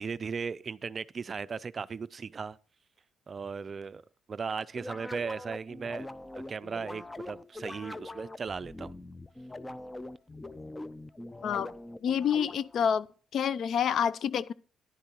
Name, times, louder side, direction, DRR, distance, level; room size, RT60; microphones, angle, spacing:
voice 1, 0.0-2.6 3.3-4.0 4.3-6.1 6.3-9.0, right 5 dB, 40° right, 0.4 m, -37 dB
sound 1, 4.7-12.9, left 1 dB, 15° left, 0.5 m, -43 dB
voice 2, 12.0-13.1 13.3-14.5, left 8 dB, 65° left, 0.5 m, -28 dB
10.5 x 10.0 x 2.9 m
cardioid pair, 90°, 0 cm